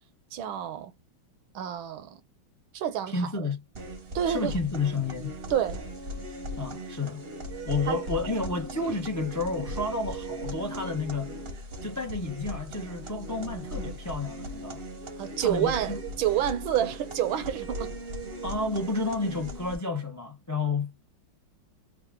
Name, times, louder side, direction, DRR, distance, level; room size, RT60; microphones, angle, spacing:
voice 1, 0.3-0.9 1.5-2.2 2.7-3.5 4.1-4.5 5.5-5.8 7.9-8.0 15.2-18.0, right 10 dB, 80° right, 1.6 m, -29 dB
voice 2, 3.1-3.6 4.2-5.3 6.6-7.2 7.6-11.3 11.8-14.8 15.4-16.0 18.4-21.1, left 3 dB, 25° left, 0.3 m, -31 dB
sound 1, 3.7-19.8, right 1 dB, 45° right, 0.8 m, -38 dB
3.6 x 2.4 x 3.5 m
omnidirectional pair, 2.2 m